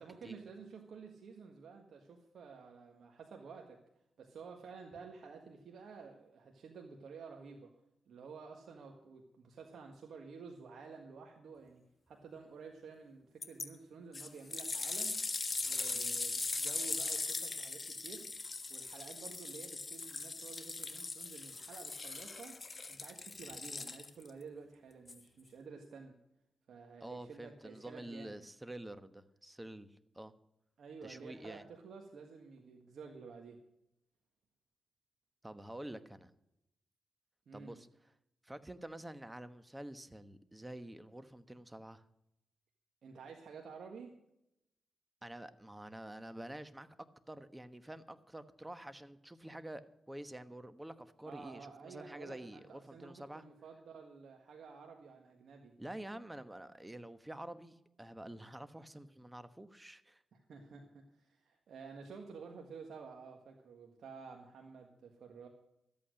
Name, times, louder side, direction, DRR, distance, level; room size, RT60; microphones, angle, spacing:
voice 1, 0.0-3.8 4.2-7.7 8.1-15.3 15.6-18.3 18.7-22.6 22.9-26.2 26.7-28.4 30.8-33.6 37.5-37.8 43.0-44.2 51.2-55.7 60.3-65.5, right 5 dB, 75° right, 2 dB, 1.6 m, -51 dB
sound 1, 13.4-13.7 14.1-24.3 25.1-25.2, left 3 dB, 35° left, 1.4 m, -40 dB
voice 2, 27.0-30.3 31.0-31.7 35.4-36.3 37.5-37.9 38.4-42.0 45.2-46.9 47.3-49.8 50.1-53.4 55.8-60.2, right 1 dB, 15° right, 12 dB, 1.2 m, -48 dB
13.5 x 8.6 x 6.4 m, 0.82 s
cardioid pair, 65°, 0 cm